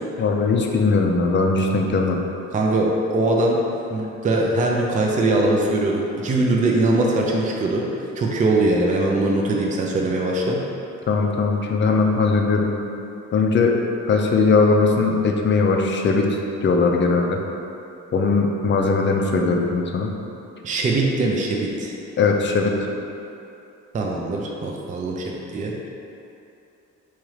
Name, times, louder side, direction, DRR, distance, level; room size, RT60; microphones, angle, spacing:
voice 1, 0.2-2.2 11.1-12.8 13.3-13.8 14.1-17.4 18.1-20.1 22.2-22.9, left 4 dB, 40° left, 2 dB, 0.4 m, -19 dB
voice 2, 2.5-3.6 3.9-7.8 8.2-10.6 20.6-21.9 23.9-25.7, right 2 dB, 25° right, -1 dB, 0.4 m, -21 dB
3.5 x 3.0 x 3.1 m, 2.8 s
cardioid pair, 90°, 30 cm